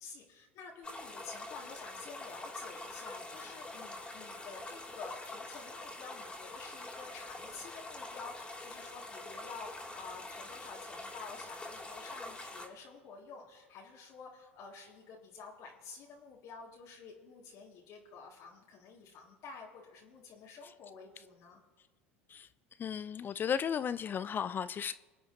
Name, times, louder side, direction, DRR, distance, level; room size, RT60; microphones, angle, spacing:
voice 1, 0.0-21.6, left 5 dB, 55° left, -2 dB, 1.9 m, -50 dB
sound 1, 0.8-12.7, left 2 dB, 15° left, 2.7 m, -45 dB
voice 2, 22.8-24.9, left 8 dB, 30° left, 15 dB, 0.3 m, -34 dB
24.5 x 8.3 x 2.7 m, 1.4 s
hypercardioid pair, 80°, 7 cm